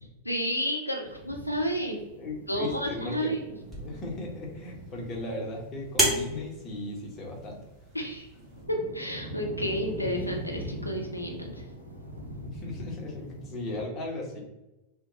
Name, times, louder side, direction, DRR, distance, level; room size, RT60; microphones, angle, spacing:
voice 1, 0.2-2.0 2.5-3.4 7.9-8.3 8.7-11.7, equal, 85° left, 2 dB, 0.4 m, -31 dB
sound 1, 1.0-13.8, equal, 85° right, 0.6 m, -42 dB
voice 2, 2.2-3.3 3.8-7.6 12.4-14.4, left 2 dB, 30° left, -1 dB, 0.9 m, -37 dB
sound 2, 3.7-8.6, right 1 dB, 10° right, 1.1 m, -34 dB
2.8 x 2.1 x 2.7 m, 0.99 s
figure-of-eight pair, 90°, 0 cm